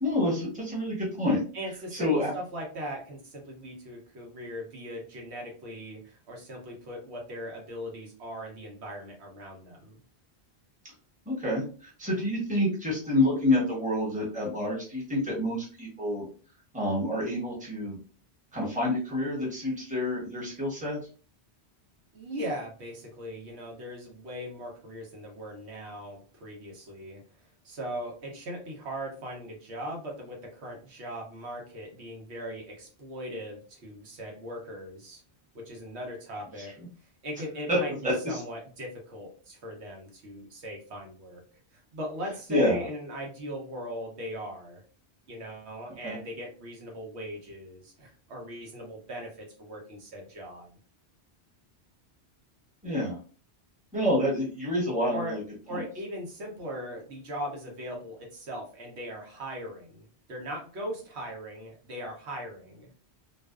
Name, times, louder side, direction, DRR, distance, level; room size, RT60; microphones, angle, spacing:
voice 1, 0.0-1.4 1.9-2.3 11.3-16.2 16.7-18.0 18.5-21.0 37.7-37.8 38.0-38.4 42.5-42.7 46.0-46.1 52.8-53.2 53.9-55.4 55.7-55.8, left 1 dB, 10° right, -5 dB, 0.9 m, -28 dB
voice 2, 1.5-10.0 22.1-27.2 27.6-35.2 35.5-36.7 37.2-41.4 41.7-44.8 45.3-50.8 55.1-55.4 55.7-62.9, equal, 80° right, 0 dB, 1.1 m, -39 dB
2.5 x 2.3 x 2.2 m, 0.39 s
omnidirectional pair, 1.1 m